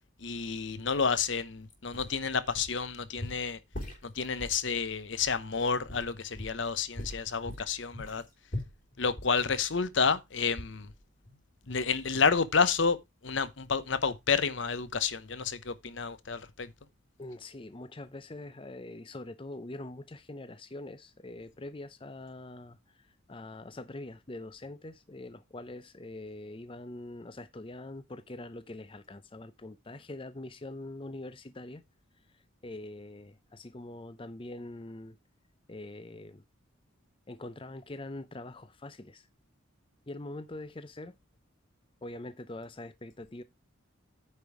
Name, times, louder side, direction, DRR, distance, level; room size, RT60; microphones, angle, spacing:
voice 1, 0.2-3.6 4.0-8.2 9.0-10.9 11.7-13.0 13.2-16.7, left 5 dB, 65° left, 0.9 m, -30 dB
sound 1, 1.7-2.9 3.2-4.6 5.2-5.3 5.9-6.7 6.9-10.2 10.6-11.0 11.3-11.4, left 1 dB, 45° left, 3.4 m, -41 dB
voice 2, 17.2-31.8 32.3-35.2 35.7-36.4 37.3-39.3 40.1-41.1 42.0-43.4, left 2 dB, 25° left, 0.6 m, -44 dB
9.3 x 5.3 x 4.8 m
head